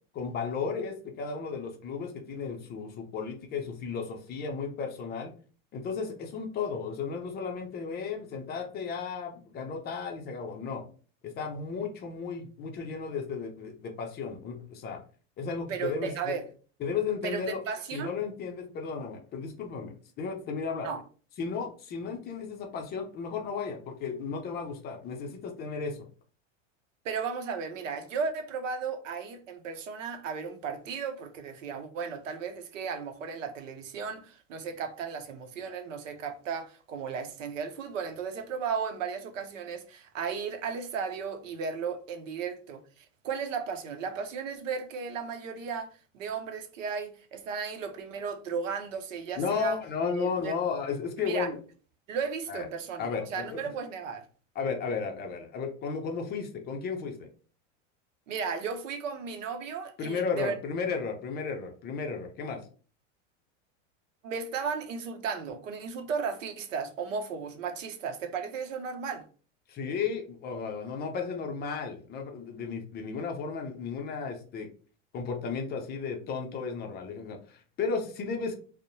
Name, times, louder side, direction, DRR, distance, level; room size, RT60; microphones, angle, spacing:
voice 1, 0.1-5.3 5.7-10.8 11.2-15.0 15.4-16.3 16.8-17.6 17.9-20.9 21.4-26.0 49.4-51.6 52.5-52.7 53.0-53.6 54.6-57.3 60.0-62.6 69.7-74.7 75.1-78.5, left 5 dB, 25° left, 0.5 m, -34 dB
voice 2, 15.7-16.4 17.2-18.1 20.8-21.0 27.0-49.8 50.1-50.5 51.2-51.5 52.1-54.2 58.3-60.6 64.2-69.2, right 6 dB, 90° right, 0.6 m, -35 dB
2.6 x 2.0 x 2.6 m
hypercardioid pair, 110°, 37 cm